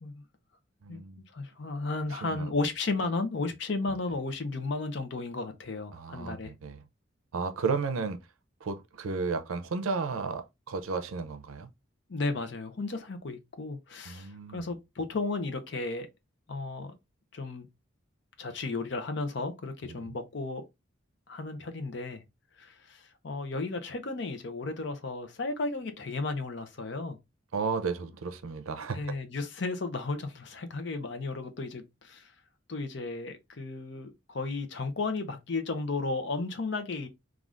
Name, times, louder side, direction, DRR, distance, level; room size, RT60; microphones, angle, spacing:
voice 1, 0.8-1.2 2.2-2.5 5.9-6.8 7.3-8.2 8.6-11.7 14.1-14.7 19.9-20.2 27.5-29.2, right 4 dB, 90° right, 0.5 m, -33 dB
voice 2, 1.3-6.5 12.1-16.1 16.5-16.9 17.3-17.7 18.4-20.6 21.3-22.2 22.6-27.2 28.9-32.3 32.7-37.1, left 3 dB, 55° left, 0.6 m, -34 dB
3.4 x 2.4 x 2.4 m
head